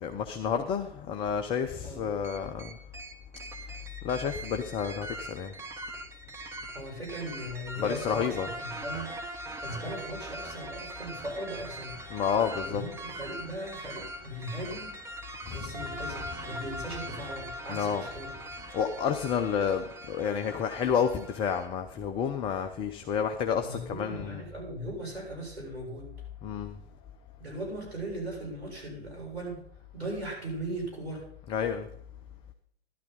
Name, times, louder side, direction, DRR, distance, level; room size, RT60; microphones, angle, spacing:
voice 1, 0.0-2.7 4.0-5.5 7.8-8.5 12.1-12.8 15.5-16.6 16.9-17.0 17.7-18.1 18.7-24.4 26.4-26.8 31.5-31.9, left 7 dB, 15° left, 7 dB, 0.5 m, -30 dB
voice 2, 1.8-2.1 6.7-9.1 9.6-12.2 12.6-15.0 15.5-18.4 23.6-26.1 27.4-29.6 29.9-31.2, right 1 dB, 80° right, -2 dB, 7.1 m, -38 dB
sound 1, 2.2-21.7, right 1 dB, 10° right, 1.2 m, -41 dB
13.5 x 12.0 x 4.1 m, 0.66 s
figure-of-eight pair, 100°, 32 cm